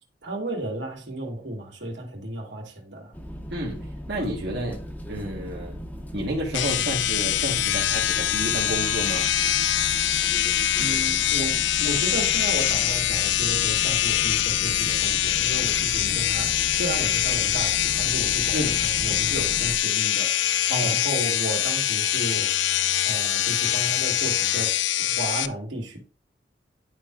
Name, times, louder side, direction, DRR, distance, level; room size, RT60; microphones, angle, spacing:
voice 1, 0.2-3.1 10.8-20.5 20.8-22.5 23.0-24.7 25.0-26.0, right 1 dB, 85° right, 2.3 m, -33 dB
sound 1, 3.1-19.8, equal, 10° left, 0.8 m, -37 dB
voice 2, 3.5-4.8 5.1-5.8 6.1-9.3 18.5-18.8 20.7-21.0, right 1 dB, 65° right, 1.6 m, -30 dB
sound 2, 6.5-25.5, left 12 dB, 85° left, 0.4 m, -24 dB
11.0 x 4.6 x 2.5 m
head